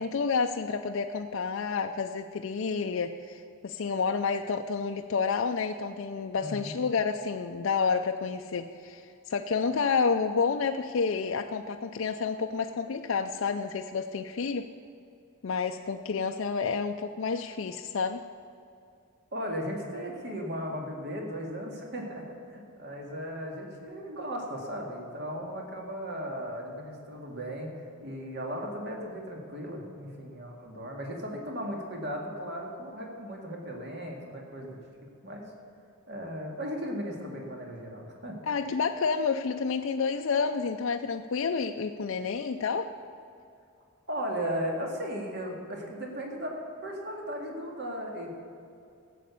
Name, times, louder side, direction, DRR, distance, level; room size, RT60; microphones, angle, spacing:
voice 1, 0.0-14.7 15.4-18.2 38.4-42.9, left 5 dB, 60° left, 5 dB, 0.4 m, -29 dB
voice 2, 6.4-6.7 19.3-35.5 36.1-38.4 44.1-46.6 46.8-48.3, equal, 50° right, 0 dB, 2.1 m, -36 dB
13.5 x 7.7 x 8.4 m, 2.5 s
head